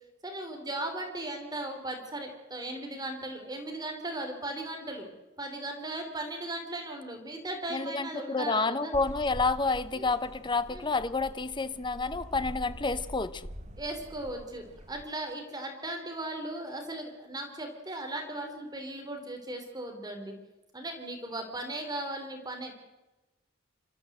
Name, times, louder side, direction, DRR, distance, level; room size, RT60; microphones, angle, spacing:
voice 1, 0.2-5.1 5.4-8.9 9.9-10.1 10.7-10.8 13.8-20.3 20.7-22.7, right 1 dB, 20° right, 3.1 m, -37 dB
voice 2, 7.7-13.5, left 3 dB, 25° left, 0.8 m, -29 dB
sound 1, 8.9-15.0, equal, 35° right, 1.6 m, -44 dB
27.0 x 13.5 x 7.9 m
head